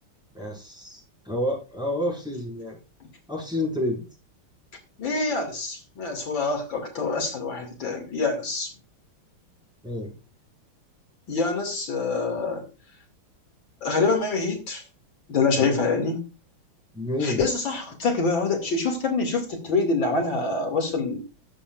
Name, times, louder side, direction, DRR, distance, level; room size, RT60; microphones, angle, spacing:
voice 1, 0.3-2.8 3.3-4.0 9.8-10.1 15.6-15.8 16.9-17.5, left 1 dB, ahead, -3 dB, 5.4 m, -29 dB
voice 2, 5.0-8.7 11.3-12.6 13.8-14.8 15.3-16.2 17.2-21.2, left 4 dB, 70° left, 3 dB, 3.2 m, -25 dB
19.0 x 8.4 x 2.5 m, 0.31 s
omnidirectional pair, 2.2 m